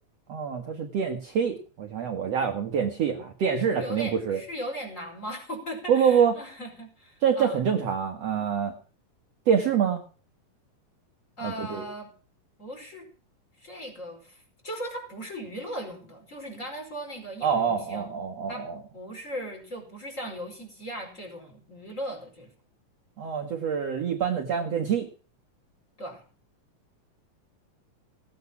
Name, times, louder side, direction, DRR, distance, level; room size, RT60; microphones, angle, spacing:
voice 1, 0.3-4.4 5.9-6.3 7.2-8.7 9.5-10.0 11.4-11.8 17.4-18.8 23.2-25.1, right 7 dB, 55° right, 3 dB, 2.2 m, -26 dB
voice 2, 3.8-7.6 11.4-12.1 12.6-13.1 13.6-18.2 18.5-18.7 18.9-22.5 26.0-26.2, equal, 20° left, 3 dB, 5.3 m, -38 dB
17.0 x 9.3 x 5.8 m, 0.40 s
omnidirectional pair, 4.0 m